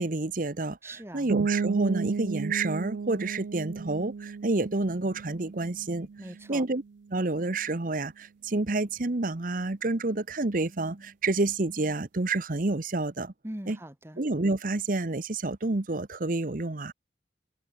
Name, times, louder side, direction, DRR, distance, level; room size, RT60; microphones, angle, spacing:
voice 1, 0.0-6.1 6.5-6.8 7.1-13.3 13.7-13.8 14.2-16.9, right 2 dB, 50° right, 1.0 m, -29 dB
voice 2, 0.8-1.3 6.2-6.6 13.4-14.2, right 1 dB, 15° right, 1.6 m, -41 dB
sound 1, 1.3-6.9, right 5 dB, 85° right, 0.4 m, -33 dB
head